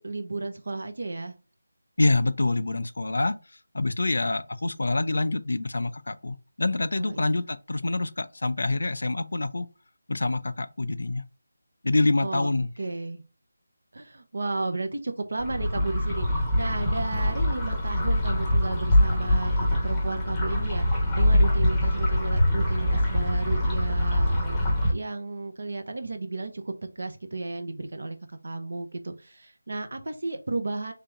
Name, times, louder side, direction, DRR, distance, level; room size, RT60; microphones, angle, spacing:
voice 1, 0.0-1.3 6.9-7.2 12.2-12.5 12.8-13.2 13.9-30.9, right 3 dB, 65° right, 0.8 m, -33 dB
voice 2, 2.0-3.4 3.7-9.7 10.1-11.2 11.8-12.7, left 2 dB, 70° left, 0.4 m, -26 dB
sound 1, 15.4-24.9, left 1 dB, 10° left, 0.8 m, -24 dB
3.4 x 2.8 x 3.7 m
figure-of-eight pair, 170°, 0 cm